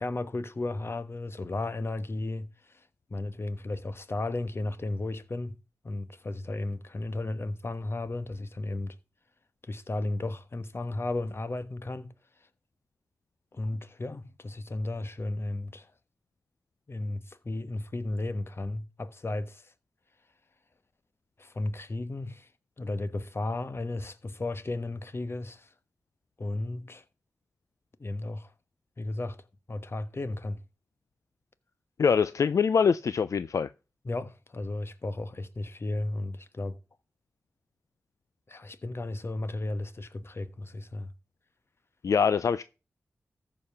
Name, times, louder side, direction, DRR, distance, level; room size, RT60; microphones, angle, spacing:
voice 1, 0.0-2.8 3.1-5.6 5.8-9.0 9.6-12.1 13.5-15.9 16.9-19.7 21.4-22.5 22.8-25.7 26.4-27.0 28.0-28.5 29.0-29.4 29.7-30.6 34.0-36.8 38.5-41.1, left 2 dB, 50° left, 1.2 m, -34 dB
voice 2, 32.0-33.7 42.0-42.6, left 6 dB, 75° left, 0.4 m, -24 dB
14.0 x 5.2 x 5.8 m
cardioid pair, 40°, 5 cm